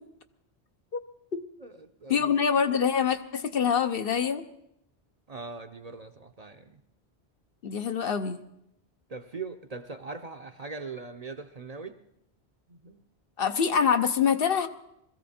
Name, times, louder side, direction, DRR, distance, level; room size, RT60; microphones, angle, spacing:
voice 1, 1.6-2.3 5.3-6.8 9.1-12.0 12.7-13.0, right 4 dB, 45° right, 7 dB, 0.7 m, -41 dB
voice 2, 2.1-4.4 7.6-8.4 13.4-14.7, left 7 dB, 60° left, 8 dB, 1.0 m, -25 dB
21.0 x 14.5 x 4.3 m, 0.79 s
omnidirectional pair, 1.1 m